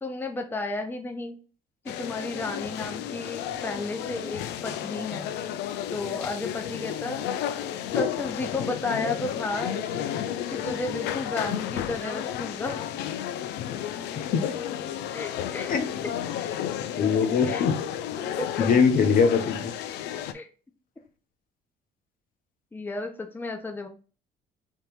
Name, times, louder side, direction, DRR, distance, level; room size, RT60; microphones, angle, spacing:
voice 1, 0.0-1.4 1.8-5.3 5.9-7.2 8.0-9.9 10.5-12.8 15.1-15.8 16.4-16.5 17.0-17.1 17.4-17.6 18.2-18.7 20.3-20.5 22.7-23.9, left 2 dB, 10° left, 0.6 m, -33 dB
sound 1, 1.9-20.3, left 10 dB, 85° left, 0.5 m, -32 dB
voice 2, 14.1-14.5 15.7-15.9 16.9-17.8 18.6-19.7, left 6 dB, 55° left, 0.9 m, -22 dB
3.6 x 3.0 x 4.4 m
cardioid pair, 110°, 17 cm